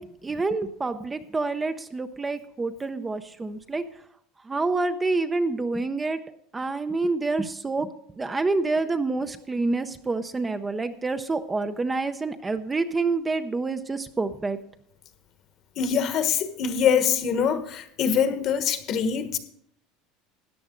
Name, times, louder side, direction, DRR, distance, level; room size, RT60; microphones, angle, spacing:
voice 1, 0.0-3.8 4.4-6.2 6.5-7.9 8.2-14.6, right 3 dB, 15° right, 9 dB, 0.6 m, -27 dB
voice 2, 15.8-19.4, left 7 dB, 45° left, 9 dB, 1.2 m, -24 dB
13.5 x 9.9 x 3.7 m, 0.68 s
supercardioid pair, 140°, 0 cm